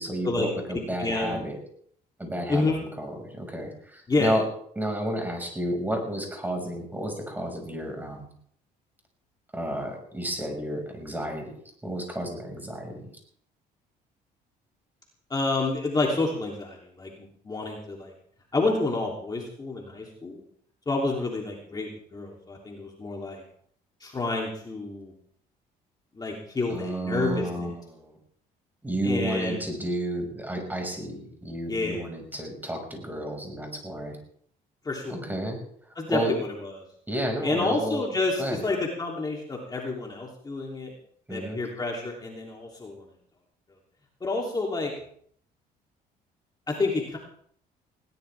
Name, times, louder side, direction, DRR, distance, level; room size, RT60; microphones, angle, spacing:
voice 1, 0.0-1.6 2.2-4.4 4.8-8.3 9.5-11.4 11.8-13.1 26.7-28.2 28.8-34.2 35.1-35.6 36.1-36.3 37.1-38.0 38.4-38.6 41.3-41.6, right 1 dB, 10° right, 3 dB, 5.8 m, -31 dB
voice 2, 0.7-1.4 2.5-2.8 4.1-4.3 15.3-18.1 18.5-20.4 20.9-23.4 24.0-25.1 26.1-27.7 29.0-29.6 31.7-32.0 34.8-35.2 35.9-36.7 37.4-40.9 41.3-43.1 44.2-44.9 46.7-47.2, left 3 dB, 25° left, -1 dB, 3.2 m, -29 dB
20.5 x 18.0 x 3.5 m, 0.62 s
cardioid pair, 110°, 17 cm